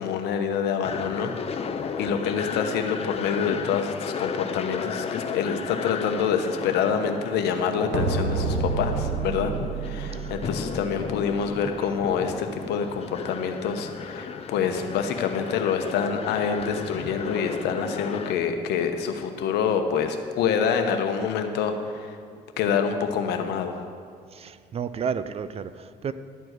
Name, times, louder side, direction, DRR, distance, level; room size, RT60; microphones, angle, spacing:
voice 1, 0.0-1.3 2.0-9.5 9.8-22.2 22.6-23.8, left 7 dB, 80° left, 6 dB, 1.0 m, -26 dB
sound 1, 0.8-18.4, left 6 dB, 35° left, 0.7 m, -34 dB
sound 2, 7.6-11.6, right 6 dB, 90° right, 1.0 m, -30 dB
voice 2, 24.3-26.1, right 7 dB, 35° right, 13 dB, 0.4 m, -32 dB
12.0 x 4.5 x 8.0 m, 2.2 s
cardioid pair, 110°, 17 cm